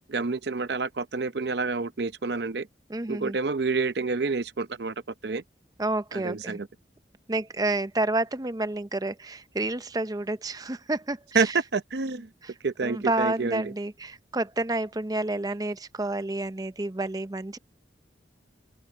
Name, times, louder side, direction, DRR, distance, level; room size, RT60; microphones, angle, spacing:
voice 1, 0.1-2.7 3.1-4.9 5.2-5.4 6.1-6.7 11.3-12.3 12.6-13.7, right 4 dB, 70° right, 0.7 m, -28 dB
voice 2, 2.9-3.4 5.8-6.6 7.3-11.5 12.4-12.5 12.8-17.6, right 2 dB, 20° right, 0.6 m, -29 dB
open air
head